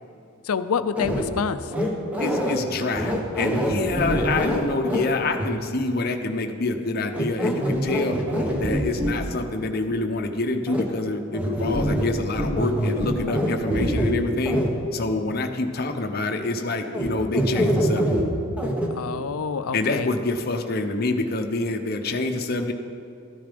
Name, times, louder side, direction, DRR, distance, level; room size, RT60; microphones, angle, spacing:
voice 1, 0.4-1.7 18.9-20.1, left 6 dB, 90° left, 12 dB, 0.5 m, -27 dB
sound 1, 1.0-1.3 1.7-2.6 2.9-5.0 5.4-5.5 7.1-9.2 10.7-10.8 11.3-12.1 12.4-14.1 14.5-14.7 16.9-17.1 17.3-18.2 18.6-18.9, equal, 5° right, 1.2 m, -24 dB
voice 2, 2.2-8.2 8.6-14.6 14.9-18.1 19.7-22.7, left 2 dB, 45° left, 5 dB, 0.8 m, -26 dB
13.0 x 9.4 x 5.2 m, 2.4 s
head